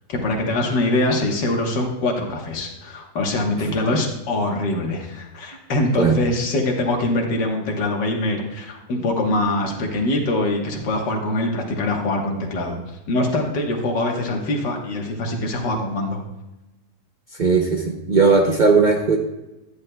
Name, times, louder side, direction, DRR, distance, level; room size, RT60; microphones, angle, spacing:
voice 1, 0.1-12.8 13.1-16.2, left 2 dB, 85° left, 1 dB, 1.9 m, -23 dB
voice 2, 17.4-19.2, right 4 dB, 85° right, 2 dB, 0.4 m, -17 dB
10.5 x 9.8 x 2.2 m, 1.0 s
omnidirectional pair, 1.8 m